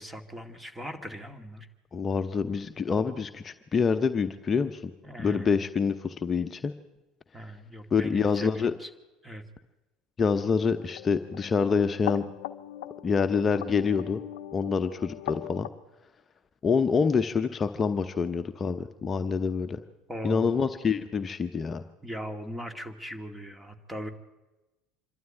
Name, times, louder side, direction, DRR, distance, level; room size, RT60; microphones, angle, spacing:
voice 1, 0.0-1.7 5.0-5.6 7.3-8.9 9.2-9.4 20.1-20.6 22.0-24.1, equal, 10° right, 8 dB, 2.4 m, -39 dB
voice 2, 1.9-4.9 5.2-6.7 7.9-8.7 10.2-12.2 13.0-14.2 14.5-15.7 16.6-19.8 20.2-21.8, left 5 dB, 30° left, 8 dB, 0.9 m, -26 dB
sound 1, 10.7-15.7, left 13 dB, 70° left, 0.7 m, -40 dB
26.0 x 13.0 x 9.0 m, 1.1 s
hypercardioid pair, 70°, 0 cm